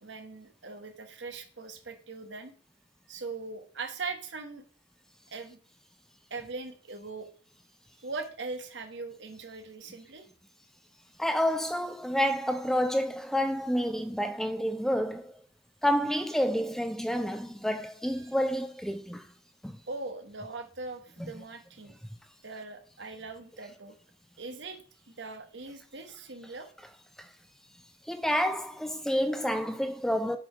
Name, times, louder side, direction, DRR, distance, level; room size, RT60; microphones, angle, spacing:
voice 1, 0.0-2.5 3.1-4.6 5.3-5.6 6.3-7.3 8.0-10.3 18.2-18.3 19.9-21.9 22.4-23.9 24.4-26.7, right 3 dB, 70° right, 1.3 m, -40 dB
voice 2, 11.2-15.3 15.8-19.2 19.6-19.8 27.2-27.3 28.1-30.4, equal, ahead, 0.4 m, -29 dB
7.2 x 4.8 x 4.9 m
head